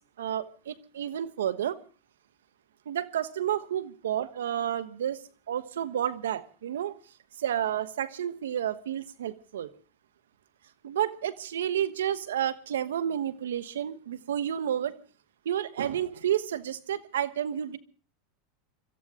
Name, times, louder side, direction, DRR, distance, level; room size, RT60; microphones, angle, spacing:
voice 1, 0.2-1.8 2.9-5.2 5.5-6.9 7.4-9.7 10.8-15.0 15.4-17.8, right 10 dB, 90° right, 13 dB, 1.2 m, -30 dB
25.5 x 14.0 x 3.7 m, 0.39 s
hypercardioid pair, 105°, 0 cm